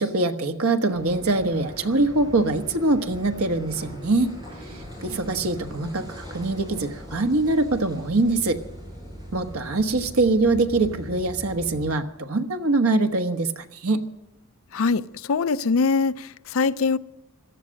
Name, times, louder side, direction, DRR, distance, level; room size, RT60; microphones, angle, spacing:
voice 1, 0.0-4.3 5.0-8.6 9.3-14.0, right 2 dB, 90° right, 1.3 m, -23 dB
Car passing by / Idling / Accelerating revving vroom, 0.9-11.9, equal, 20° right, 7.4 m, -40 dB
voice 2, 14.7-17.0, left 4 dB, 70° left, 0.5 m, -23 dB
17.5 x 12.5 x 6.4 m
head